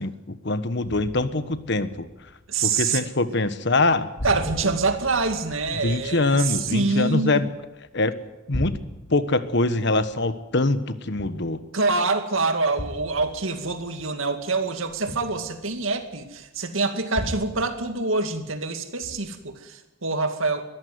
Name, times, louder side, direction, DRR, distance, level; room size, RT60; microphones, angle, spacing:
voice 1, 0.0-2.1 2.6-4.1 5.8-7.5 7.9-8.2 8.5-8.8 9.1-11.6, left 2 dB, 60° left, 12 dB, 1.3 m, -23 dB
sound 1, 0.8-3.1 3.4-3.9 4.2-7.9 8.3-11.9 12.8-16.3 17.1-18.7 19.0-19.5, equal, 80° left, 2.8 m, -38 dB
voice 2, 2.5-3.1 4.2-7.4 11.7-20.6, right 3 dB, 75° right, 7 dB, 2.3 m, -25 dB
22.0 x 14.5 x 9.5 m, 0.99 s
head